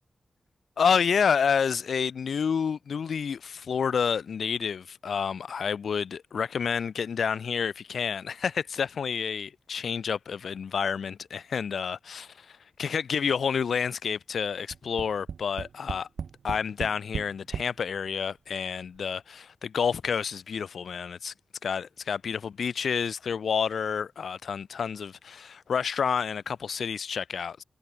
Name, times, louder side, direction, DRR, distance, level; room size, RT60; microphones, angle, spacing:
voice 1, 0.8-16.1 16.4-21.3 21.6-27.6, left 6 dB, 85° left, 3.5 m, -29 dB
Tap, 14.7-17.7 18.6-18.7 19.0-19.1, right 6 dB, 85° right, 1.4 m, -36 dB
cardioid pair, 50°, 0 cm